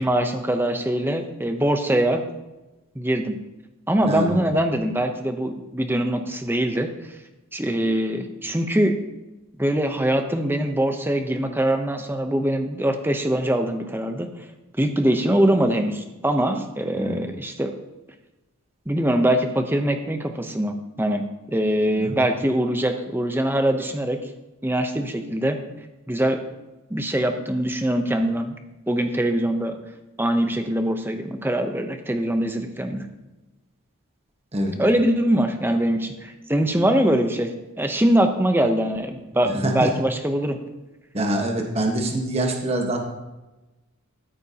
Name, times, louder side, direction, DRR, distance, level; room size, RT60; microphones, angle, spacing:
voice 1, 0.0-2.2 3.0-3.4 3.9-6.9 7.5-9.0 9.6-14.3 14.8-17.7 18.9-21.2 21.5-24.2 24.6-25.6 26.1-26.4 26.9-28.6 28.9-29.8 30.2-33.1 34.8-37.5 37.8-40.6, right 1 dB, 10° right, 6 dB, 0.7 m, -23 dB
voice 2, 4.0-4.4 17.0-17.2 22.0-22.2 34.5-34.8 39.4-39.9 41.1-43.0, right 1 dB, 30° right, 1 dB, 1.3 m, -25 dB
14.0 x 8.7 x 2.9 m, 1.0 s
head